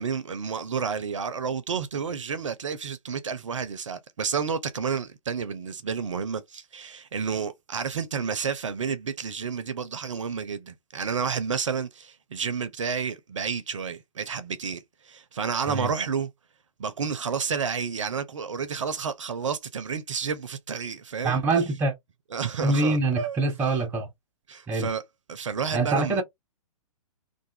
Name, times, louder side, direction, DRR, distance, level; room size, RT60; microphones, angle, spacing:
voice 1, 0.0-16.3 16.8-21.4 22.3-23.7 24.5-25.0 25.3-26.2, right 6 dB, 60° right, 0.5 m, -30 dB
voice 2, 21.2-21.9 22.6-24.1 24.7-24.9 25.7-26.2, right 3 dB, 10° right, 0.5 m, -24 dB
2.5 x 2.3 x 2.6 m
figure-of-eight pair, 120°, 18 cm